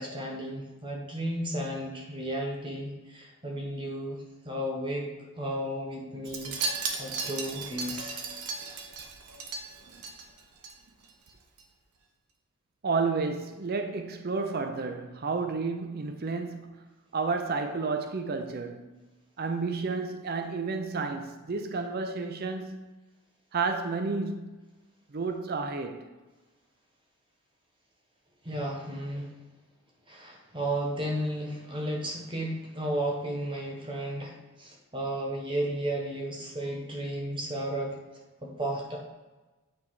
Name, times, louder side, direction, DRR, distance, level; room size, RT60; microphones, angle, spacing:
voice 1, 0.0-5.1 5.4-6.6 7.0-8.2 28.4-29.3 30.1-38.0 38.4-39.0, right 1 dB, 20° right, 1.1 m, -33 dB
Wind chime, 6.2-10.7 11.0-11.3 11.6-11.7, right 4 dB, 85° right, 0.9 m, -36 dB
voice 2, 12.8-16.9 17.1-19.1 19.4-22.9 23.5-24.5 25.1-26.1, right 4 dB, 45° right, 0.5 m, -31 dB
8.8 x 3.5 x 4.8 m
head